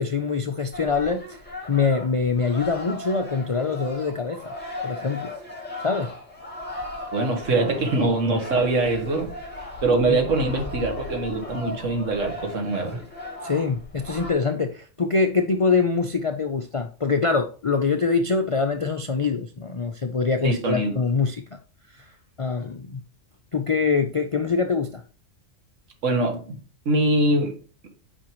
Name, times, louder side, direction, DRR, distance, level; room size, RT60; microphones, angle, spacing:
voice 1, 0.0-1.4 1.7-4.5 4.8-5.3 5.8-6.1 10.1-10.2 13.4-21.4 22.0-22.1 22.4-23.0 23.5-25.0, left 4 dB, 50° left, 5 dB, 0.4 m, -24 dB
sound 1, 0.7-14.3, left 2 dB, 10° left, 2.4 m, -37 dB
voice 2, 7.1-9.3 9.8-13.0 20.4-21.0 26.0-26.6 26.9-27.5, right 2 dB, 75° right, 4 dB, 1.7 m, -23 dB
8.8 x 5.3 x 3.1 m, 0.39 s
omnidirectional pair, 1.3 m